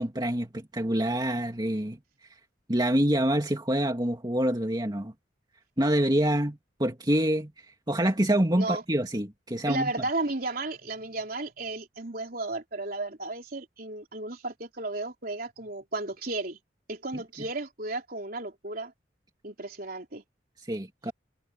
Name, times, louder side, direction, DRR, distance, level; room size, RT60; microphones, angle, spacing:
voice 1, 0.0-2.0 2.7-5.1 5.8-7.5 7.9-9.9 20.7-21.1, right 1 dB, 25° right, 2.4 m, -26 dB
voice 2, 9.7-16.6 16.9-18.9 19.4-20.2, right 2 dB, 55° right, 3.9 m, -34 dB
head